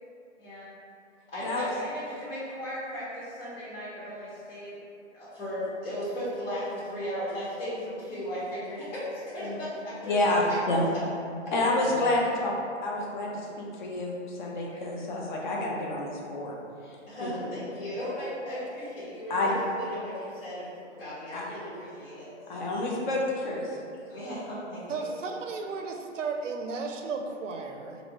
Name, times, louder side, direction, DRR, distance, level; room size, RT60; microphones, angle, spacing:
voice 1, 1.3-4.7 5.1-10.7 14.6-14.8 17.1-22.7 24.1-25.1, equal, 65° left, -12 dB, 1.3 m, -36 dB
voice 2, 10.0-10.8 11.5-12.5 12.8-16.6 17.2-17.3 19.3-19.5 21.3-21.4 22.5-23.7, left 2 dB, 40° left, -2 dB, 0.6 m, -28 dB
voice 3, 24.9-28.0, right 4 dB, 90° right, 4 dB, 0.5 m, -34 dB
2.9 x 2.6 x 2.8 m, 2.5 s
hypercardioid pair, 140°, 36 cm